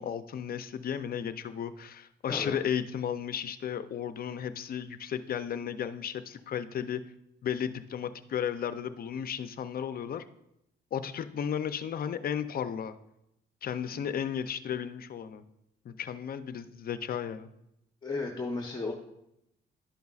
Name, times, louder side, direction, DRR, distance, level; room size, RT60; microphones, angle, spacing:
voice 1, 0.0-7.0 7.4-10.3 10.9-13.0 13.6-15.4 15.8-17.5, left 8 dB, 50° left, 12 dB, 0.5 m, -34 dB
voice 2, 2.3-2.6 18.0-18.9, left 3 dB, 20° left, 1 dB, 0.9 m, -34 dB
11.5 x 5.3 x 2.4 m, 0.82 s
cardioid pair, 90°, 20 cm